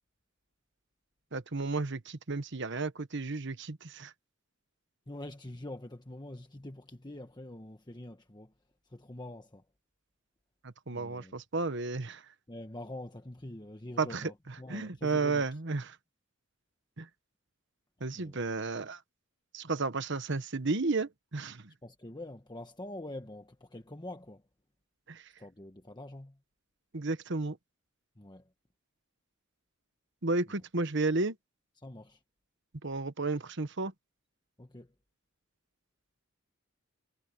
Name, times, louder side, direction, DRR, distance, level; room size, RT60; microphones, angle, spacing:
voice 1, 1.3-4.1 10.6-12.2 14.0-14.3 14.7-16.0 17.0-17.1 18.0-19.0 19.5-21.7 25.1-25.3 26.9-27.6 30.2-31.4 32.8-33.9, right 3 dB, 60° right, 1.2 m, -33 dB
voice 2, 5.1-8.5 8.8-9.6 10.9-11.4 12.5-15.5 18.1-18.4 21.8-24.4 25.4-26.4 28.2-28.5 30.5-30.6 31.8-32.2 34.6-34.9, left 1 dB, 20° left, 1.3 m, -45 dB
head